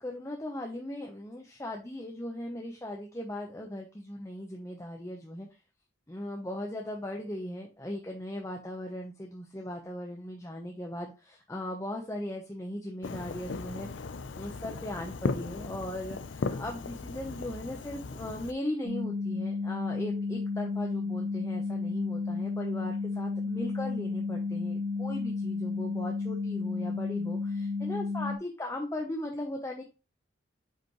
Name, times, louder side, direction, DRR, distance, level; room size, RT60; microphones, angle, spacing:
voice 1, 0.0-5.5 6.1-13.9 14.3-29.8, left 1 dB, 15° left, 0 dB, 0.8 m, -38 dB
Fireworks, 13.0-18.5, left 4 dB, 65° left, 0.5 m, -37 dB
sound 1, 18.8-28.4, left 4 dB, 80° right, 1.9 m, -32 dB
7.4 x 5.1 x 3.1 m, 0.30 s
head